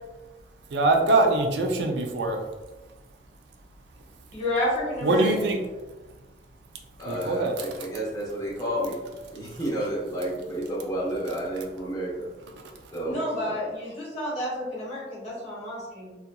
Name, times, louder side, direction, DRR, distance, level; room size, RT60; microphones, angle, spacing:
voice 1, 0.7-2.4 5.0-5.6 7.1-7.7, right 2 dB, 65° right, 2 dB, 0.4 m, -23 dB
voice 2, 4.3-5.5 13.0-16.2, left 1 dB, 40° left, -7 dB, 1.1 m, -30 dB
voice 3, 5.0-5.4 7.0-9.0 9.3-12.3 12.9-13.5, right 1 dB, 20° left, -7 dB, 0.9 m, -31 dB
2.8 x 2.4 x 2.2 m, 1.2 s
head